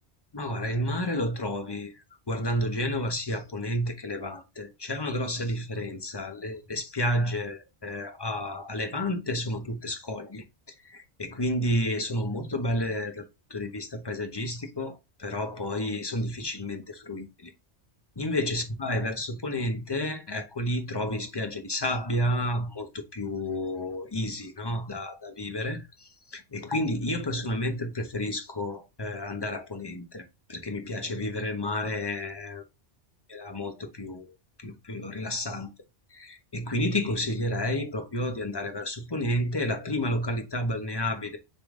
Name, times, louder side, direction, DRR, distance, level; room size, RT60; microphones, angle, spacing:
voice 1, 0.3-10.4 10.8-13.2 13.5-17.5 18.2-30.2 30.5-32.6 33.3-34.3 34.6-35.7 36.1-41.4, left 1 dB, 25° left, 0.9 m, -31 dB
6.6 x 3.8 x 3.8 m
omnidirectional pair, 1.2 m